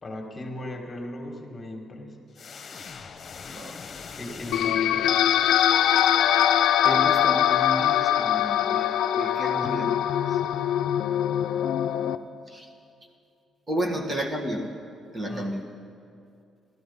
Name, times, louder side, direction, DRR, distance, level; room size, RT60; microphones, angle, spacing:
voice 1, 0.0-2.3 4.1-5.1 9.5-9.8 15.3-15.5, left 1 dB, 30° left, 2 dB, 1.8 m, -37 dB
sound 1, 2.3-5.7, left 5 dB, 45° left, 1.1 m, -42 dB
sound 2, 4.5-12.2, left 10 dB, 75° left, 0.5 m, -22 dB
voice 2, 6.8-10.0 10.3-10.4 12.5-12.7 13.7-14.7 15.1-15.6, equal, 30° right, 0 dB, 1.8 m, -32 dB
14.0 x 13.0 x 5.5 m, 2.6 s
cardioid pair, 90°, 0 cm